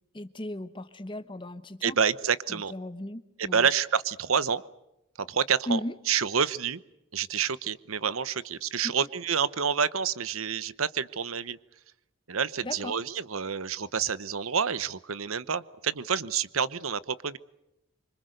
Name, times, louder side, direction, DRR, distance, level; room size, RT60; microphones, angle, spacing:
voice 1, 0.1-2.0 2.5-3.7 5.7-5.9 8.8-8.9 12.6-13.0, left 1 dB, 25° left, 11 dB, 1.1 m, -36 dB
voice 2, 1.8-2.7 3.4-4.6 5.2-5.8 6.1-6.8 7.1-11.6 12.3-17.4, right 6 dB, 90° right, 16 dB, 1.0 m, -28 dB
26.5 x 25.5 x 6.6 m, 0.86 s
head